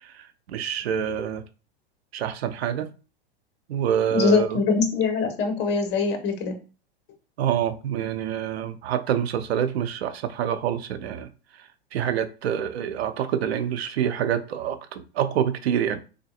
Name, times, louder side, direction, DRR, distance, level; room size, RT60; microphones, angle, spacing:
voice 1, 0.0-1.4 2.1-2.9 3.7-4.6 7.4-11.3 11.6-16.0, right 9 dB, 85° right, 0.6 m, -27 dB
voice 2, 4.1-6.5, left 4 dB, 35° left, 1.1 m, -23 dB
3.9 x 3.5 x 2.4 m
hypercardioid pair, 125°, 30 cm